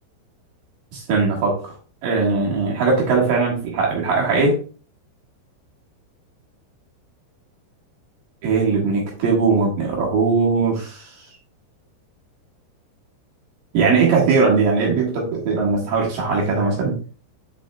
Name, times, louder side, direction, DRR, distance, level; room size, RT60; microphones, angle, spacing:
voice 1, 0.9-1.7 2.0-4.6 8.4-11.0 13.7-17.0, right 4 dB, 60° right, -2 dB, 2.4 m, -19 dB
9.1 x 4.8 x 2.2 m, 0.39 s
omnidirectional pair, 5.7 m